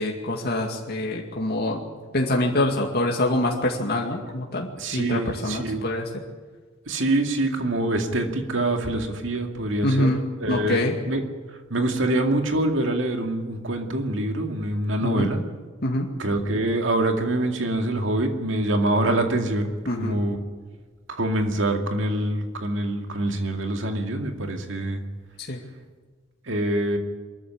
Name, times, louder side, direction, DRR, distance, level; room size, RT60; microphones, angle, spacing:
voice 1, 0.0-1.8 2.1-6.0 9.8-10.2 10.5-10.9 15.0-15.3 15.8-16.1 19.9-20.2 25.5-25.6, left 1 dB, 50° left, 0 dB, 2.2 m, -25 dB
voice 2, 4.8-5.8 6.9-10.1 10.4-11.2 11.7-15.4 16.2-20.4 21.2-25.0 26.5-27.0, right 1 dB, 70° right, 4 dB, 2.3 m, -25 dB
22.5 x 14.0 x 9.9 m, 1.4 s
head